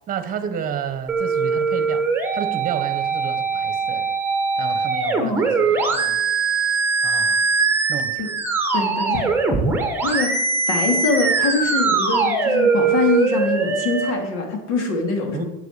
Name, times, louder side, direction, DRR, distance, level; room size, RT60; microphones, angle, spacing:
voice 1, 0.1-2.0 2.3-4.1 4.6-6.2 7.0-7.4 7.9-8.3 15.3-15.4, right 8 dB, 25° right, 9 dB, 1.1 m, -31 dB
sound 1, 1.1-14.1, right 4 dB, 5° right, 1.1 m, -21 dB
voice 2, 8.7-9.2 10.0-10.3 10.7-15.5, left 3 dB, 70° left, 3 dB, 2.8 m, -23 dB
9.3 x 7.6 x 6.7 m, 1.0 s
cardioid pair, 165°, 33 cm